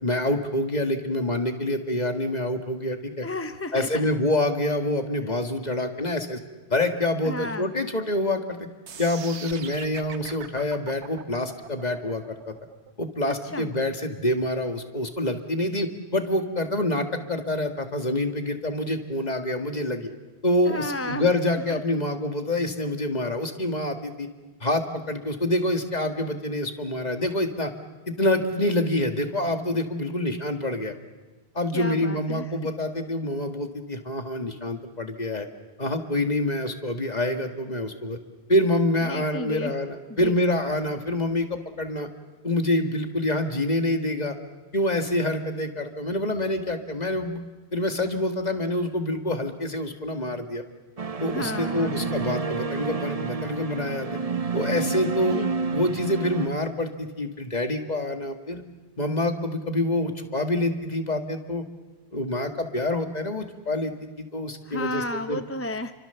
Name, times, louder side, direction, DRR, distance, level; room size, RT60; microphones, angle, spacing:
voice 1, 0.0-3.3 3.7-6.4 6.7-8.7 9.0-12.5 13.0-20.1 20.4-24.3 24.6-27.7 28.1-30.9 31.6-35.5 35.8-38.2 38.5-42.1 42.4-44.4 44.7-47.4 47.7-50.6 51.2-54.2 54.5-55.4 55.7-58.6 59.0-61.6 62.1-65.4, left 1 dB, 40° left, 6 dB, 2.0 m, -26 dB
voice 2, 3.2-4.1 7.2-7.7 13.5-13.7 20.7-21.3 31.7-32.5 39.1-39.7 40.1-40.4 51.3-52.0 55.3-55.5 64.6-65.9, left 1 dB, 15° left, 9 dB, 0.7 m, -32 dB
sound 1, 8.9-14.9, right 7 dB, 85° right, 1.3 m, -42 dB
sound 2, 51.0-56.5, right 4 dB, 35° right, 1.0 m, -29 dB
30.0 x 24.5 x 7.0 m, 1.2 s
omnidirectional pair, 1.1 m